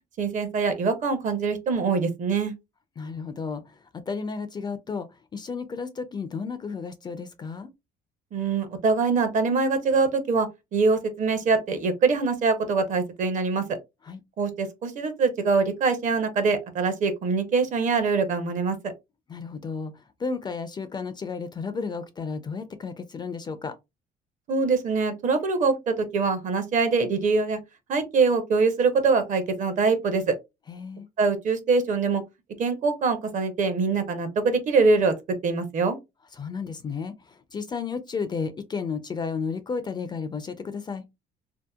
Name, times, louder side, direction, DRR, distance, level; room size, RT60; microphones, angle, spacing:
voice 1, 0.2-2.5 8.3-13.6 14.4-18.9 24.5-27.6 27.9-30.4 31.2-32.2 32.6-35.1 35.4-36.0, right 4 dB, 50° right, 0.7 m, -24 dB
voice 2, 3.0-7.7 14.0-14.2 19.3-23.8 30.7-31.1 36.3-41.0, left 5 dB, 25° left, 0.3 m, -33 dB
2.7 x 2.1 x 2.2 m
cardioid pair, 110°, 17 cm